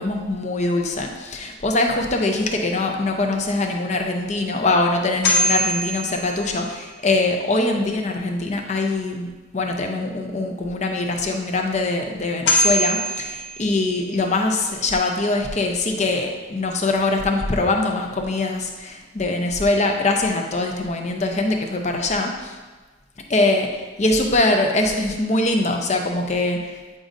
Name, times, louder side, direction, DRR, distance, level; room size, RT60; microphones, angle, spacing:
voice 1, 0.0-9.3 9.5-22.6 23.3-26.8, left 2 dB, 35° left, 3 dB, 0.7 m, -23 dB
sound 1, 5.2-7.1 12.1-12.2 12.5-14.4, left 1 dB, 60° left, 1.1 m, -23 dB
8.5 x 5.1 x 2.6 m, 1.3 s
head